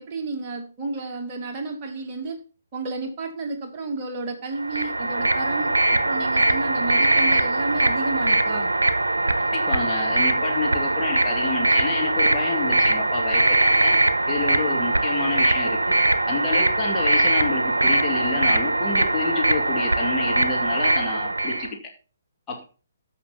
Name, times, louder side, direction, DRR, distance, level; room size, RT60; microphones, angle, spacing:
voice 1, 0.0-2.4 2.7-8.7, right 3 dB, 30° right, 2 dB, 2.1 m, -31 dB
sound 1, 4.6-21.7, right 2 dB, 75° right, 0.9 m, -21 dB
voice 2, 9.4-14.0 14.3-15.9 16.3-21.9 22.5-22.6, left 4 dB, 15° left, -1 dB, 2.6 m, -29 dB
13.5 x 5.9 x 4.1 m, 0.34 s
figure-of-eight pair, 130°, 0 cm